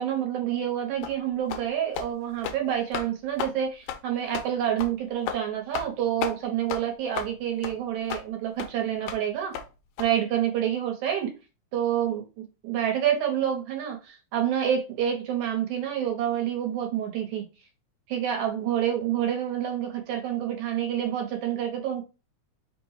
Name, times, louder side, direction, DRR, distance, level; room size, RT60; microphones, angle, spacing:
voice 1, 0.0-9.5 10.0-11.3 11.7-17.4 18.1-22.0, right 10 dB, 75° right, 2 dB, 2.3 m, -28 dB
sound 1, 1.0-1.2 1.5-1.7 1.9-2.1 2.4-2.6 2.9-3.1 3.4-3.5 3.9-4.0 4.3-4.5 4.8-4.9 5.3-5.4 5.7-5.9 6.2-6.4 6.7-6.8 7.1-7.3 7.6-7.7 8.1-8.2 8.6-8.7 9.1-9.2 9.5-9.7 10.0-10.1, left 9 dB, 80° left, 2.0 m, -33 dB
5.0 x 2.2 x 4.7 m, 0.31 s
omnidirectional pair, 3.4 m